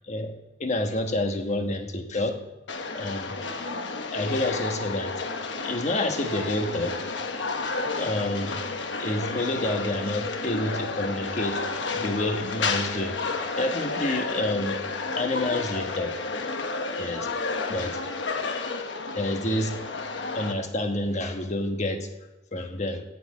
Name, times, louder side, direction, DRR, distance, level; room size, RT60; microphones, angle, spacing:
voice 1, 0.6-2.4 2.9-3.4 4.1-5.1 5.6-7.0 8.0-8.6 9.0-13.1 13.6-14.8 15.1-16.1 17.0-17.3 17.7-18.0 19.1-19.8 20.3-22.1 22.5-23.0, left 1 dB, 40° left, 5 dB, 1.3 m, -28 dB
sound 1, 2.7-20.5, left 3 dB, 80° left, 1.2 m, -31 dB
8.8 x 8.8 x 8.5 m, 1.1 s
head